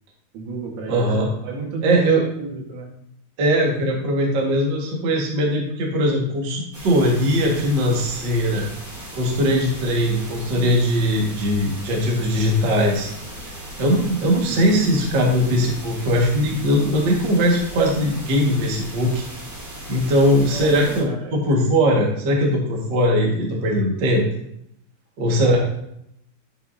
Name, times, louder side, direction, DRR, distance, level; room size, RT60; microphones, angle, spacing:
voice 1, 0.3-1.1 1.4-2.9 14.5-14.6 20.5-21.4 25.4-25.6, right 4 dB, 80° right, 1 dB, 3.6 m, -30 dB
voice 2, 0.9-1.3 1.8-2.2 3.4-8.7 9.1-13.1 13.8-19.2 19.9-24.2 25.2-25.6, equal, 40° right, -1 dB, 1.8 m, -20 dB
sound 1, 6.7-21.0, right 1 dB, 25° right, 3.7 m, -37 dB
11.0 x 8.4 x 2.8 m, 0.74 s
omnidirectional pair, 4.4 m